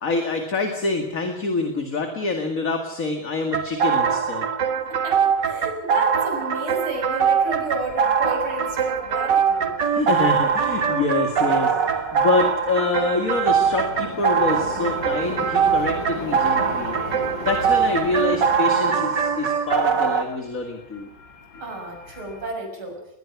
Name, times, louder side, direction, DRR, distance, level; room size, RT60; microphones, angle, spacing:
voice 1, 0.0-4.5 9.8-17.0 17.4-21.1, left 3 dB, 40° left, 5 dB, 2.5 m, -26 dB
sound 1, 3.5-20.2, right 7 dB, 55° right, 2.2 m, -22 dB
voice 2, 5.0-9.7 21.6-23.0, right 2 dB, 80° right, 2 dB, 7.1 m, -31 dB
sound 2, 6.7-22.5, left 2 dB, 65° left, 3.9 m, -38 dB
21.5 x 20.5 x 6.1 m, 0.83 s
omnidirectional pair, 2.3 m